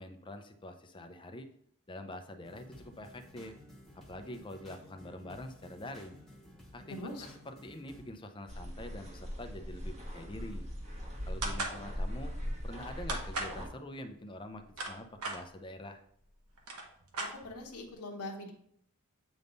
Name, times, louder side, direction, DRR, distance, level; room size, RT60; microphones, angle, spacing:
voice 1, 0.0-1.5 1.9-3.5 4.1-6.2 6.7-7.0 7.5-10.7 11.3-12.3 12.6-16.0, left 1 dB, 20° left, 6 dB, 0.6 m, -45 dB
sound 1, 2.4-8.1, left 1 dB, ahead, 1.2 m, -54 dB
voice 2, 6.9-7.3 17.2-18.5, left 1 dB, 85° left, 1 dB, 1.1 m, -42 dB
sound 2, 8.5-13.7, equal, 30° right, 1.3 m, -40 dB
sound 3, 11.4-11.8 13.1-13.6 14.5-15.4 16.2-16.3 16.5-17.7, right 2 dB, 70° right, 1.2 m, -37 dB
8.0 x 3.6 x 3.9 m, 0.67 s
head